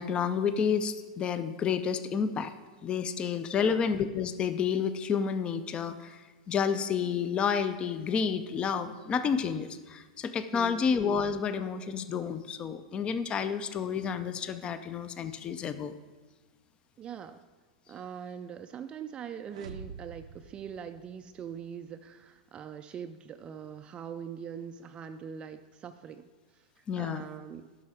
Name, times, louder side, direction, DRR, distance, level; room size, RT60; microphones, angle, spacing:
voice 1, 0.0-2.5 2.8-15.9 26.9-27.2, left 6 dB, 25° left, 12 dB, 0.5 m, -30 dB
voice 2, 3.6-3.9 10.5-10.9 17.0-17.4 17.9-26.2 26.5-27.7, right 7 dB, 25° right, 8 dB, 0.4 m, -42 dB
sound 1, 19.5-21.6, right 5 dB, 80° right, 0.6 m, -47 dB
11.0 x 6.2 x 4.9 m, 1.3 s
hypercardioid pair, 105°, 4 cm